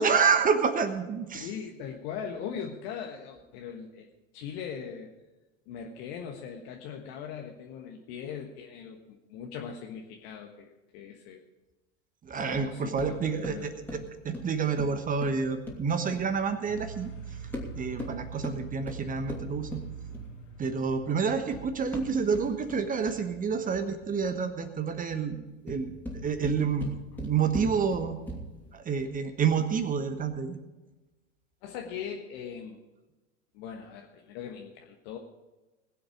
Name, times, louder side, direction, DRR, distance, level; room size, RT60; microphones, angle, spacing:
voice 1, 0.0-1.5 12.2-17.1 17.8-19.8 20.6-25.9 26.2-26.9 27.2-28.2 28.7-30.6, right 6 dB, 20° right, 8 dB, 1.2 m, -28 dB
voice 2, 1.3-4.1 4.3-5.1 5.7-11.4 12.4-13.7 31.6-32.8 33.5-35.2, left 7 dB, 50° left, 2 dB, 1.4 m, -40 dB
sound 1, 12.5-16.7 17.4-20.4 21.2-23.4 25.5-28.7, left 1 dB, 5° left, 2.9 m, -41 dB
sound 2, 16.7-24.5, right 5 dB, 70° left, 2.8 m, -44 dB
20.5 x 7.9 x 5.0 m, 1.1 s
figure-of-eight pair, 85°, 39 cm